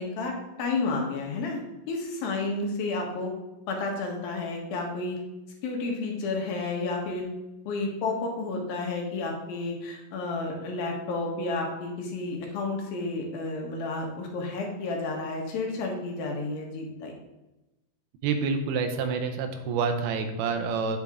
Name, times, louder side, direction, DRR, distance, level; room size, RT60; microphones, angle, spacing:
voice 1, 0.0-3.3 3.7-5.2 5.6-7.3 7.7-17.1, left 3 dB, 75° left, 1 dB, 3.1 m, -31 dB
voice 2, 18.2-21.0, right 5 dB, 85° right, 7 dB, 2.8 m, -28 dB
9.3 x 7.1 x 3.6 m, 1.0 s
omnidirectional pair, 4.3 m